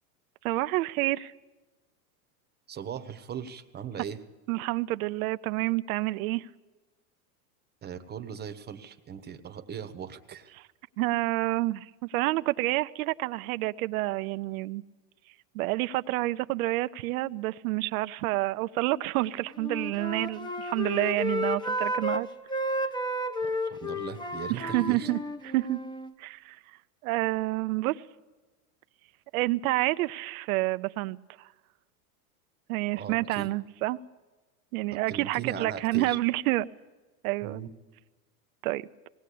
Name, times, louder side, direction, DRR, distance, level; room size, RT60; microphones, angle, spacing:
voice 1, 0.4-1.3 4.5-6.5 10.5-10.6 11.0-14.8 15.5-22.3 24.5-25.2 25.4-25.8 26.2-26.6 27.0-28.0 29.3-31.2 32.7-34.0 34.7-36.7 37.2-37.6 38.6-38.9, right 19 dB, 65° right, 0.7 m, -28 dB
voice 2, 2.7-4.2 7.8-10.5 23.4-25.1 32.9-33.5 34.9-36.2 37.4-37.7, right 7 dB, 20° right, 1.2 m, -39 dB
Wind instrument woodwind instrument, 19.5-22.2 22.5-26.1, equal, 10° left, 1.2 m, -32 dB
19.5 x 17.5 x 8.5 m
supercardioid pair, 125°, 46 cm